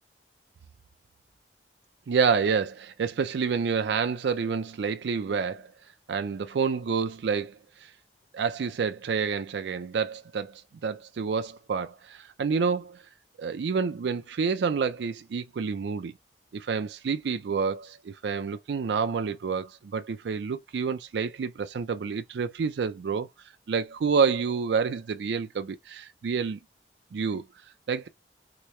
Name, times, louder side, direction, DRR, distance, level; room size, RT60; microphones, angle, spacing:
voice 1, 2.1-5.7 6.1-7.9 8.3-13.0 13.4-16.1 16.5-23.3 23.7-26.6 27.1-27.4 27.9-28.1, right 5 dB, 75° right, 0.4 m, -28 dB
3.2 x 3.0 x 3.1 m
head